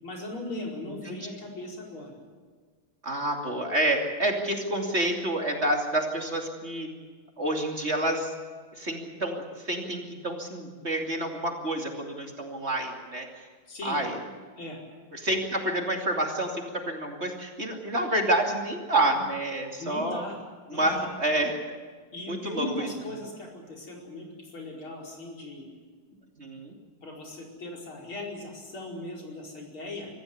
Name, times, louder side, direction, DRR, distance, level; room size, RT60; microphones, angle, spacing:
voice 1, 0.0-2.2 13.7-14.0 14.6-14.8 19.8-20.4 20.7-21.1 22.1-25.7 27.0-30.1, left 2 dB, 80° left, 0 dB, 5.8 m, -38 dB
voice 2, 3.0-6.9 7.4-8.3 8.8-13.3 13.8-14.2 15.1-20.2 20.7-21.5 22.3-22.9 26.4-26.7, right 1 dB, 30° right, 2 dB, 2.9 m, -28 dB
25.0 x 15.0 x 9.9 m, 1.5 s
omnidirectional pair, 2.3 m